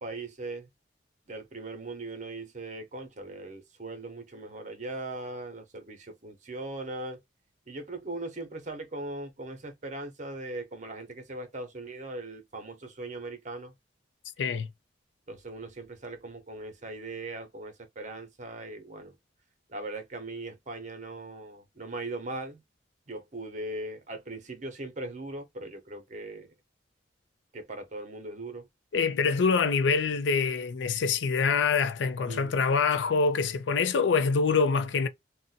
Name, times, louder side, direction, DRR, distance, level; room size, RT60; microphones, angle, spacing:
voice 1, 0.0-0.7 1.3-7.2 7.7-13.7 15.3-19.1 19.7-22.6 23.1-26.5 27.5-28.7 32.2-32.5, right 2 dB, 40° right, 0.8 m, -39 dB
voice 2, 28.9-35.1, left 5 dB, 80° left, 0.4 m, -25 dB
2.5 x 2.1 x 3.9 m
head